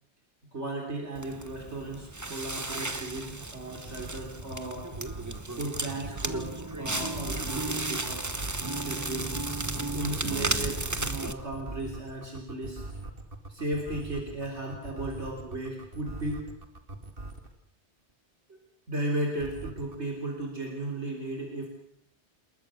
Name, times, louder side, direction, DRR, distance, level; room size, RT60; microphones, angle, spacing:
voice 1, 0.5-4.9 5.5-8.3 8.8-9.3 9.9-13.0 13.5-16.5 18.5-18.6 18.9-21.7, right 1 dB, 75° right, 2 dB, 3.8 m, -35 dB
Crackle, 1.1-11.3, right 2 dB, 15° right, 1.1 m, -34 dB
sound 1, 3.1-17.5 19.4-20.0, right 2 dB, 50° right, 2.5 m, -41 dB
28.5 x 21.5 x 6.4 m, 0.70 s
omnidirectional pair, 1.2 m